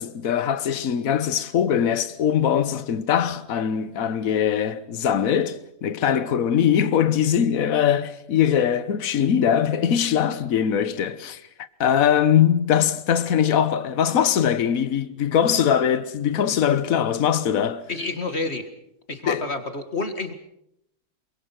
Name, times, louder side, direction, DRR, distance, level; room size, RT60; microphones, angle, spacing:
voice 1, 0.0-11.4 11.8-17.8 19.3-19.4, left 9 dB, 50° left, 1.3 m, -21 dB
voice 2, 17.9-18.7 19.1-20.3, left 3 dB, 30° left, 1.9 m, -29 dB
27.5 x 24.0 x 6.0 m
omnidirectional pair, 2.4 m